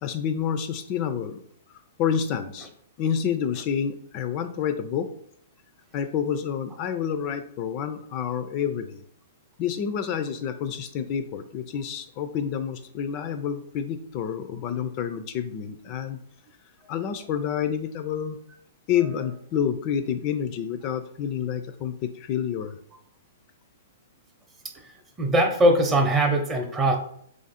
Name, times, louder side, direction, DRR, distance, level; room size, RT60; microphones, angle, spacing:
voice 1, 0.0-1.4 2.0-2.7 3.0-5.1 5.9-9.0 9.6-16.2 16.9-18.4 18.9-22.8, left 8 dB, 40° left, 9 dB, 0.4 m, -28 dB
voice 2, 25.2-26.9, right 1 dB, 20° right, 3 dB, 0.7 m, -21 dB
3.1 x 2.5 x 4.1 m, 0.69 s
hypercardioid pair, 135°, 0 cm